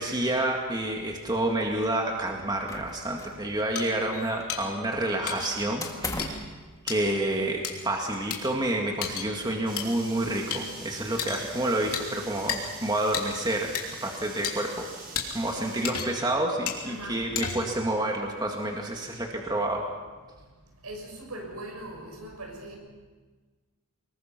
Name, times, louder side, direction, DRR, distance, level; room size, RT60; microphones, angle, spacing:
voice 1, 0.0-6.4 6.8-13.7 14.0-14.9 15.3-19.8, right 1 dB, 20° right, 1 dB, 2.0 m, -29 dB
sound 1, 2.7-3.5 3.7-4.7 5.8-6.5, left 2 dB, 15° left, 1.8 m, -37 dB
sound 2, 3.8-3.9 4.5-4.6 5.3-5.5 6.2-6.3 6.9-7.0 7.6-7.7 8.3-8.4 9.0-9.3 9.8-9.9 10.5-10.6 11.2-11.5 11.9-12.1 12.5-12.6 13.1-13.3 13.8-13.9 14.4-14.5 15.2-15.3 15.8-16.2 16.7-16.8 17.4-17.8, left 8 dB, 90° left, 3.2 m, -31 dB
sound 3, 9.6-15.9, right 3 dB, 40° right, 5.6 m, -44 dB
voice 2, 16.8-17.3 20.8-22.8, right 1 dB, 80° right, 2 dB, 6.4 m, -40 dB
24.5 x 21.0 x 5.9 m, 1.4 s
head